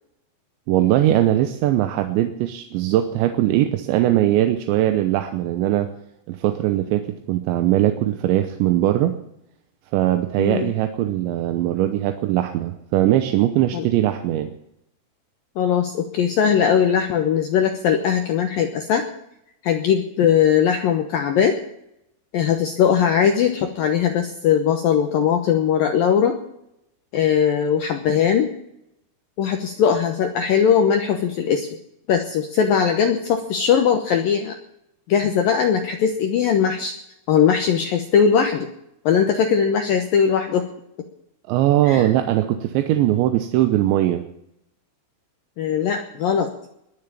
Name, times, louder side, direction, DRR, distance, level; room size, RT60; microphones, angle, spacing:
voice 1, 0.7-5.9 6.3-9.2 9.9-14.5 41.5-44.3, right 13 dB, 80° right, 7 dB, 3.1 m, -20 dB
voice 2, 10.4-10.7 13.7-13.8 15.6-19.1 19.6-21.6 22.3-26.4 27.1-28.5 29.4-31.7 32.1-34.6 35.1-36.9 37.3-38.7 39.1-40.7 41.8-42.1 45.6-46.7, left 7 dB, 75° left, 5 dB, 2.1 m, -20 dB
21.5 x 7.2 x 8.7 m, 0.79 s
omnidirectional pair, 5.6 m